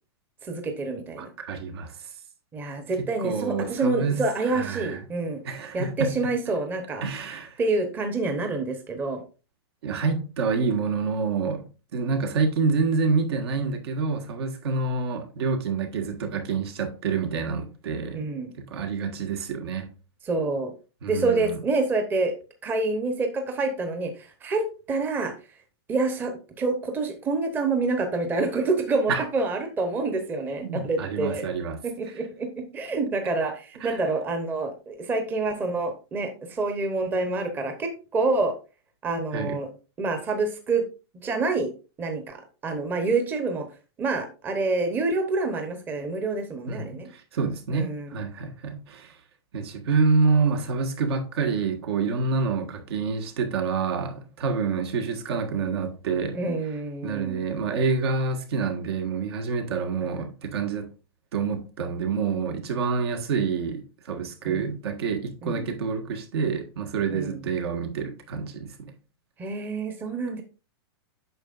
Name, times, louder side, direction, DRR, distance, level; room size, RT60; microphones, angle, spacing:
voice 1, 0.4-1.3 2.5-5.4 5.7-7.0 7.6-9.2 18.1-18.5 20.2-20.7 21.1-22.3 22.6-25.3 25.9-31.4 31.8-38.5 39.0-39.7 40.0-40.8 41.2-41.7 42.0-43.7 44.0-47.1 47.7-48.1 56.3-57.4 60.0-60.2 64.5-64.7 65.4-65.6 67.1-67.4 69.4-70.4, right 3 dB, 15° right, 0.9 m, -27 dB
voice 2, 1.2-1.9 3.0-5.0 5.4-6.2 7.0-7.6 9.8-11.7 11.9-18.2 18.6-19.9 21.0-21.6 29.1-29.2 30.6-31.8 33.8-33.9 39.3-39.6 46.7-49.1 49.5-56.4 57.0-60.9 61.3-68.9, right 4 dB, 70° right, 1.7 m, -27 dB
8.8 x 6.1 x 2.5 m
hypercardioid pair, 155°, 14 cm